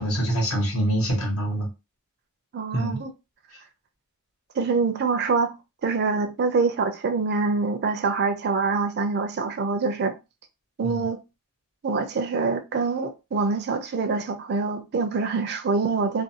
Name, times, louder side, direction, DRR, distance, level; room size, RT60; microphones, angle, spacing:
voice 1, 0.0-1.7 2.7-3.0 10.8-11.0, right 1 dB, 80° left, 1.0 m, -25 dB
voice 2, 2.5-3.1 4.5-5.6 5.8-10.2 10.8-11.2 11.8-16.2, right 4 dB, 50° right, 0.4 m, -25 dB
2.5 x 2.2 x 2.7 m
head